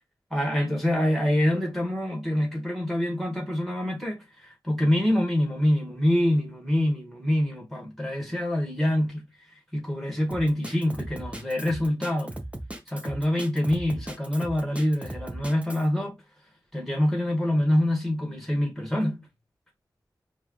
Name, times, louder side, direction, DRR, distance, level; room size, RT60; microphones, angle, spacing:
voice 1, 0.3-9.3 9.7-12.4 12.9-16.2 16.7-19.3, left 1 dB, 5° left, 1.8 m, -25 dB
Drum kit, 10.3-15.9, right 1 dB, 15° right, 0.8 m, -38 dB
4.7 x 2.5 x 3.2 m
wide cardioid pair, 85°, 8 cm